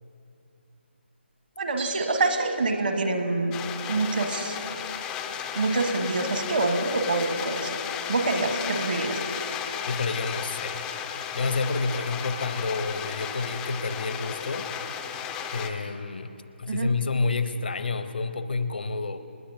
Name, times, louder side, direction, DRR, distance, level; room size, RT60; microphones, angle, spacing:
voice 1, 1.6-3.6 3.9-4.6 5.5-7.8 8.1-9.2 16.7-16.9, right 3 dB, 55° right, 6 dB, 1.3 m, -26 dB
Bell, 1.8-3.2 3.4-3.5, right 6 dB, 75° right, 2.7 m, -42 dB
sound 1, 3.5-15.7, left 8 dB, 10° left, 0.4 m, -34 dB
voice 2, 9.9-10.9 11.3-14.7 15.5-19.2, left 4 dB, 55° left, 11 dB, 0.8 m, -29 dB
29.0 x 9.8 x 2.7 m, 2.7 s
figure-of-eight pair, 150°, 6 cm